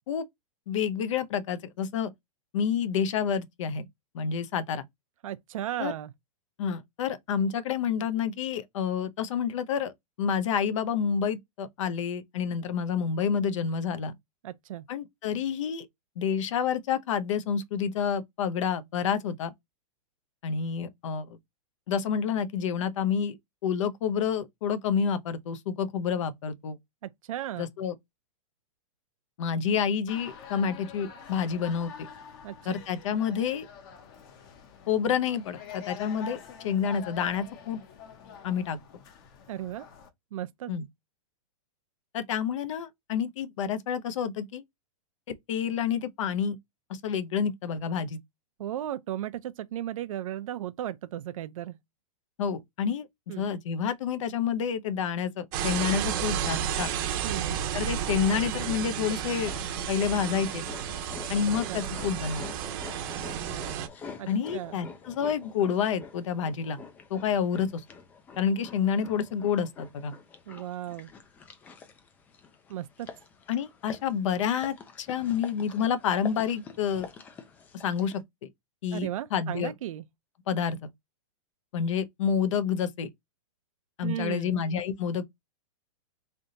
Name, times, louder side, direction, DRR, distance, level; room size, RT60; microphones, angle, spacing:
voice 1, 0.7-2.1 2.5-3.9 4.1-4.8 5.8-5.9 6.6-9.9 10.2-14.1 14.9-15.9 16.2-19.5 20.4-21.4 21.9-23.4 23.6-26.8 27.6-27.9 29.4-32.1 32.6-33.7 34.9-37.8 38.4-38.8 40.7-40.8 42.1-44.6 45.5-46.6 46.9-48.2 52.4-53.1 53.4-56.9 57.7-59.5 59.9-60.6 61.3-62.5 64.3-66.8 67.1-67.8 68.4-70.1 73.5-77.1 77.8-78.2 78.8-79.7 80.5-80.9 81.7-83.1 84.0-85.2, left 7 dB, 60° left, 0.8 m, -29 dB
voice 2, 5.2-6.1 14.4-14.8 27.0-27.7 32.4-32.8 39.5-39.9 40.3-40.7 48.6-51.8 53.3-53.5 57.2-57.6 61.7-61.8 64.2-64.8 70.5-71.1 72.7-73.1 78.9-80.0 84.0-84.6, right 12 dB, 70° right, 0.5 m, -35 dB
sound 1, 30.1-40.1, left 7 dB, 40° left, 1.0 m, -46 dB
sound 2, 55.5-63.9, right 9 dB, 40° right, 0.8 m, -32 dB
sound 3, 58.9-78.2, left 5 dB, 10° left, 0.3 m, -47 dB
3.4 x 2.8 x 3.9 m
supercardioid pair, 165°, 18 cm